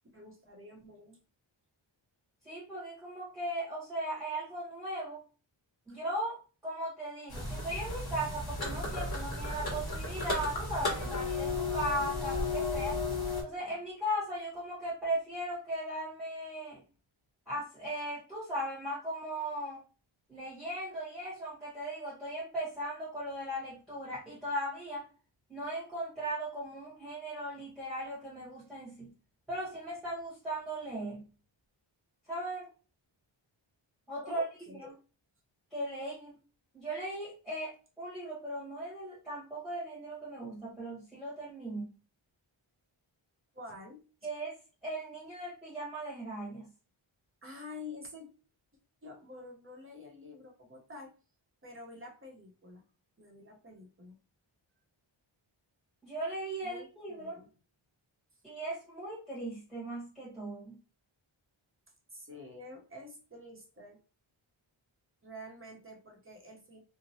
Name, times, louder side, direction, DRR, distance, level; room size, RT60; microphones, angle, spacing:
voice 1, 0.1-1.2 5.9-6.0 34.2-35.0 43.5-44.0 47.4-48.3 49.0-51.1 51.6-52.8 53.2-54.2 56.6-57.5 62.1-64.0 65.2-66.8, left 2 dB, 25° right, 0 dB, 0.8 m, -48 dB
voice 2, 2.4-5.2 5.9-13.0 13.4-16.8 17.5-19.8 20.3-25.1 25.5-29.1 29.5-31.2 32.3-32.7 34.1-34.9 35.7-36.4 36.7-41.9 44.2-46.7 56.0-57.4 58.4-60.8, right 1 dB, ahead, -9 dB, 1.2 m, -38 dB
sound 1, 7.3-13.4, left 2 dB, 50° left, 1.2 m, -34 dB
3.0 x 2.1 x 2.7 m, 0.35 s
wide cardioid pair, 95°, 48 cm